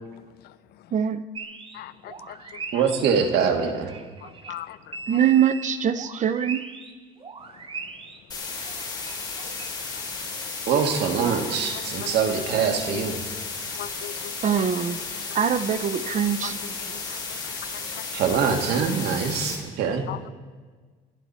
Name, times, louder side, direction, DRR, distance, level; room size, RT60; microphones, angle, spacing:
voice 1, 0.9-1.2 5.1-6.6 14.4-15.0 15.3-16.8 17.1-17.2, right 8 dB, 45° right, 0.9 m, -23 dB
sound 1, 1.3-6.9 7.2-9.8, right 4 dB, 30° right, 1.4 m, -40 dB
voice 2, 1.7-2.4 4.2-5.0 12.0-12.2 13.8-14.3 16.4-16.5 16.8-17.4 17.7-18.1 18.4-18.6 20.1-20.3, left 14 dB, 70° left, 0.6 m, -39 dB
voice 3, 2.7-4.0 9.5-9.6 10.7-13.2 18.1-20.1, right 6 dB, 80° right, 2.2 m, -24 dB
sound 2, 8.3-19.5, left 4 dB, 25° left, 4.2 m, -34 dB
28.0 x 12.0 x 4.3 m
cardioid pair, 110°, 17 cm